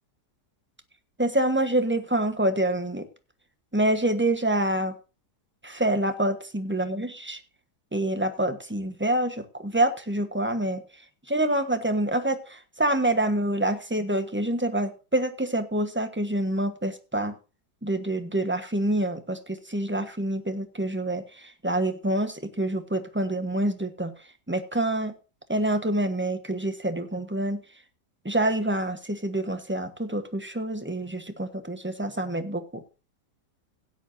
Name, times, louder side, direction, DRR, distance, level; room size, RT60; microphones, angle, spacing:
voice 1, 1.2-3.1 3.7-4.9 5.6-7.4 7.9-10.8 11.3-17.3 17.8-24.1 24.5-25.1 25.5-27.6 28.2-32.8, right 1 dB, 10° right, 8 dB, 1.1 m, -26 dB
16.5 x 9.6 x 2.7 m, 0.33 s
omnidirectional pair, 1.7 m